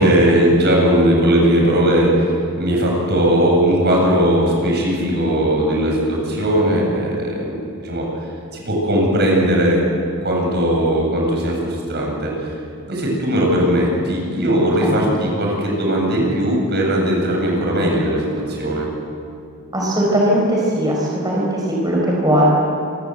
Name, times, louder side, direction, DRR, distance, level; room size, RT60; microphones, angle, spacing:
voice 1, 0.0-8.0 8.5-9.8 10.2-12.5 12.9-18.9, right 1 dB, 50° right, -1 dB, 8.0 m, -18 dB
voice 2, 19.7-22.4, equal, 15° right, -3 dB, 5.1 m, -18 dB
28.0 x 24.5 x 8.1 m, 2.4 s
head